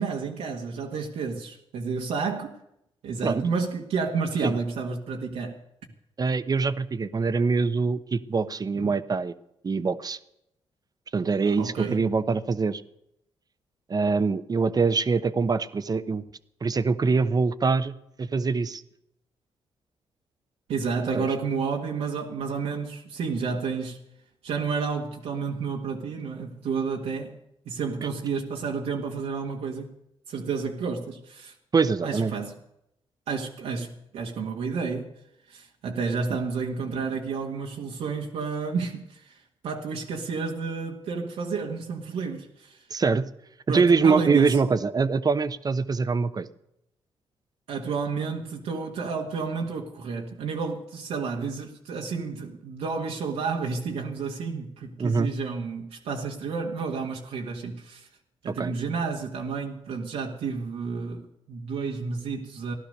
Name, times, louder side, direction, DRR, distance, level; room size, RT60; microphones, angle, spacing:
voice 1, 0.0-2.6 3.0-5.6 8.7-8.9 11.4-12.1 20.7-24.0 24.4-27.4 27.6-29.9 30.3-31.5 32.0-32.6 33.3-35.1 35.5-42.8 43.7-44.6 47.7-58.1 58.4-62.7, right 5 dB, 80° right, 1.7 m, -31 dB
voice 2, 6.2-9.3 9.6-10.2 11.1-12.8 13.9-16.2 16.6-18.8 21.1-21.3 31.7-32.3 42.9-43.2 43.7-46.5 55.0-55.3 58.6-58.7, right 4 dB, 40° right, 1.0 m, -24 dB
16.0 x 11.5 x 6.6 m
cardioid pair, 65°, 10 cm